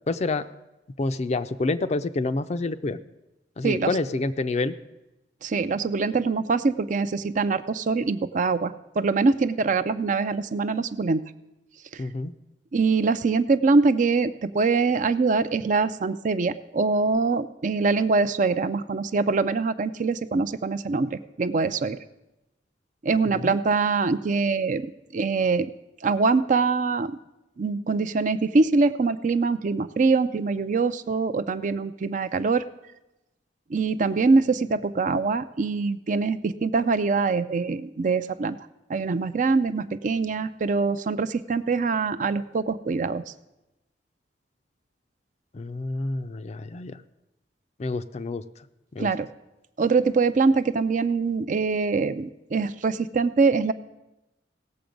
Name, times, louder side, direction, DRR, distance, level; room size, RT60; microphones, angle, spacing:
voice 1, 0.1-0.5 1.0-3.0 3.6-4.8 12.0-12.3 23.4-23.6 45.5-47.0 47.8-48.4 48.9-49.1, left 3 dB, 40° left, 12 dB, 0.4 m, -28 dB
voice 2, 5.4-11.2 11.9-12.0 12.7-22.0 23.0-25.7 26.0-27.2 27.6-32.6 33.7-38.6 38.9-43.2 49.0-49.3 49.8-53.7, right 4 dB, 45° right, 12 dB, 0.4 m, -24 dB
17.0 x 6.9 x 5.2 m, 0.96 s
head